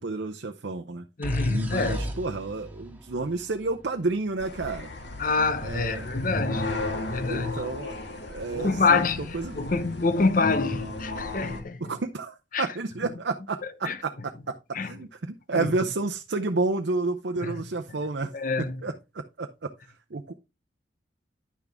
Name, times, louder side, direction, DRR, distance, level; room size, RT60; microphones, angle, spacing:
voice 1, 0.0-1.0 1.5-4.9 5.6-6.1 7.3-7.9 8.3-9.0 9.3-9.7 11.8-14.5 14.8-18.3 18.8-18.9 19.4-19.5 20.1-20.3, right 3 dB, 70° right, 0.7 m, -30 dB
voice 2, 1.2-2.1 5.2-6.7 7.1-7.6 8.5-11.8 12.5-12.7 13.8-14.0 14.7-14.9 15.5-15.7 17.4-17.6 18.3-18.8, left 4 dB, 45° left, 0.8 m, -26 dB
sound 1, 1.2-4.9, equal, 10° right, 2.0 m, -36 dB
sound 2, 4.4-11.6, left 2 dB, 65° left, 1.9 m, -34 dB
10.5 x 6.0 x 3.4 m
head